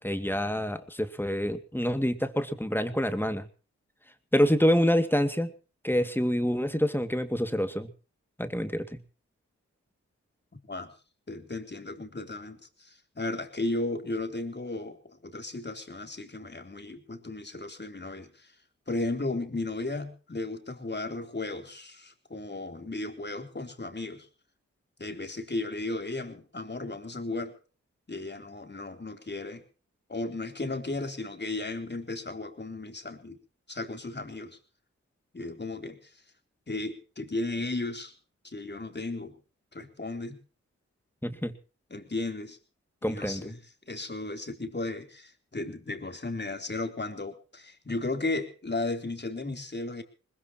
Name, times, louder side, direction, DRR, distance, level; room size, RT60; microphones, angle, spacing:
voice 1, 0.0-3.5 4.3-5.5 5.8-7.9 8.4-9.0 41.2-41.5 43.0-43.5, equal, 5° left, 8 dB, 2.3 m, -27 dB
voice 2, 11.3-18.5 18.9-24.3 25.0-27.6 28.1-29.6 30.1-33.4 33.7-34.6 35.3-36.2 36.7-38.1 38.4-39.4 39.7-40.4 41.9-42.6 43.0-43.6 43.9-50.0, left 2 dB, 35° left, 5 dB, 3.8 m, -35 dB
21.0 x 20.5 x 3.1 m, 0.36 s
cardioid pair, 45°, 29 cm